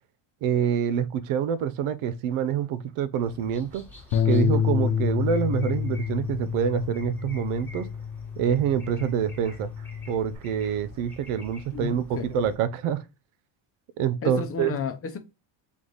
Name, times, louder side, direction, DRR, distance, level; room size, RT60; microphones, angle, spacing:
voice 1, 0.4-3.8 4.2-7.9 8.4-9.7 10.1-13.0 14.0-14.8, right 8 dB, 85° right, 0.7 m, -26 dB
sound 1, 3.2-12.6, left 2 dB, 5° left, 1.2 m, -48 dB
Bass guitar, 4.1-10.4, left 8 dB, 90° left, 0.8 m, -28 dB
voice 2, 11.7-12.3 14.2-15.2, left 6 dB, 30° left, 0.6 m, -32 dB
3.6 x 3.1 x 3.9 m
cardioid pair, 140°, 49 cm